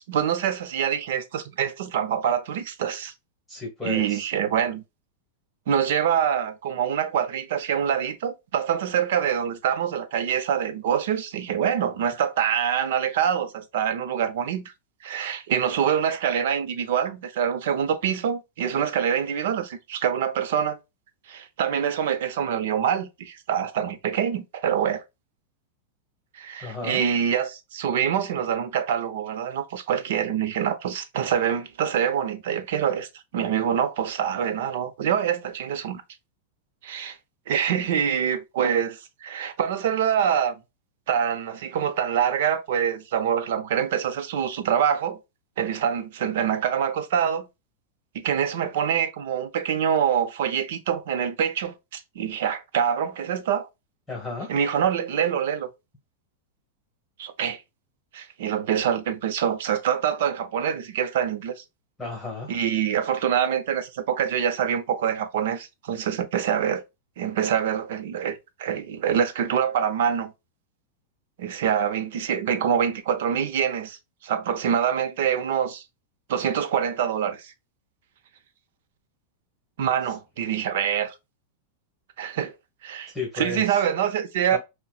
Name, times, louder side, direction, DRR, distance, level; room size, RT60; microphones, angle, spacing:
voice 1, 0.1-3.1 3.8-4.8 5.7-14.7 15.0-20.8 21.3-25.0 26.3-36.0 36.8-37.2 37.5-40.6 41.1-45.2 45.6-47.5 48.1-53.7 54.5-55.7 57.2-57.6 58.1-61.6 62.5-66.8 67.2-70.3 71.4-75.8 76.3-77.5 79.8-81.1 82.2-82.5 82.8-84.6, right 8 dB, 70° right, 0.6 m, -25 dB
voice 2, 3.5-4.3 26.6-27.0 54.1-54.5 62.0-62.5 83.1-83.8 84.5-84.6, left 3 dB, 5° left, 1.3 m, -33 dB
5.5 x 2.2 x 2.3 m
supercardioid pair, 145°, 0 cm